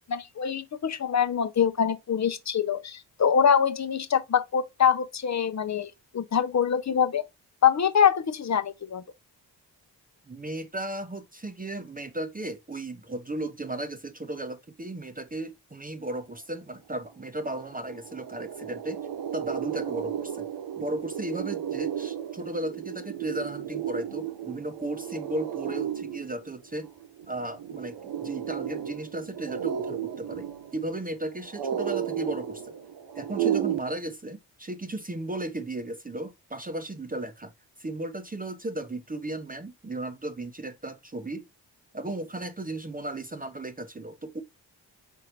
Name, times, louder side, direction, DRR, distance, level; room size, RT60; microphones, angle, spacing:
voice 1, 0.0-7.2 7.6-9.0, left 8 dB, 40° left, 0.7 m, -24 dB
voice 2, 10.3-19.0 19.3-20.5 20.8-26.9 27.3-32.7 33.2-37.5 37.8-41.5 41.9-44.4, right 1 dB, 20° right, 0.8 m, -35 dB
sound 1, 17.2-17.3 17.6-33.8, right 9 dB, 75° right, 0.8 m, -33 dB
4.5 x 3.8 x 3.0 m
supercardioid pair, 50°, 43 cm